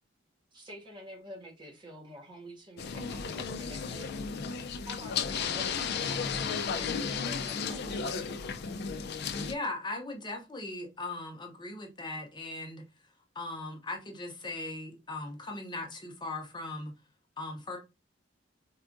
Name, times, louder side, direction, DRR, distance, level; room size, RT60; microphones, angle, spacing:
voice 1, 0.5-4.4 4.9-8.3, equal, 25° right, 0.9 m, -48 dB
sound 1, 2.8-9.5, left 6 dB, 60° left, 0.4 m, -34 dB
voice 2, 9.4-12.8 13.3-16.9 17.4-17.8, left 2 dB, 25° left, 0.7 m, -39 dB
4.4 x 2.4 x 2.5 m
head